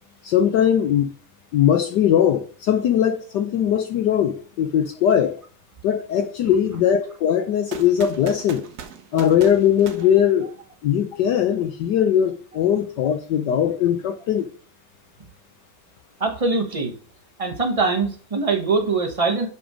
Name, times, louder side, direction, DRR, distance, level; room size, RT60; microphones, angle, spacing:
voice 1, 0.2-1.1 1.5-5.4 5.8-8.7 9.1-10.5 10.8-14.5, left 9 dB, 70° left, 1.0 m, -20 dB
sound 1, 7.7-10.9, right 7 dB, 60° right, 1.0 m, -39 dB
voice 2, 16.2-16.9 17.4-19.5, right 4 dB, 35° right, 0.5 m, -22 dB
6.0 x 5.5 x 5.0 m
omnidirectional pair, 2.4 m